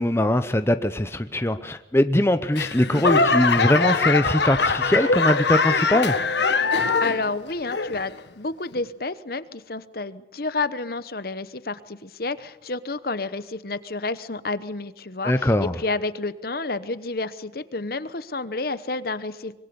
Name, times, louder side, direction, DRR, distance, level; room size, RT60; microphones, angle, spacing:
voice 1, 0.0-6.2 15.2-15.7, left 1 dB, 15° left, 0.7 m, -21 dB
Laughter / Clapping / Crowd, 2.5-7.3 7.7-8.2 8.8-8.9, left 4 dB, 70° left, 1.5 m, -22 dB
voice 2, 7.0-19.5, left 3 dB, 50° left, 1.0 m, -30 dB
24.5 x 22.5 x 6.9 m
head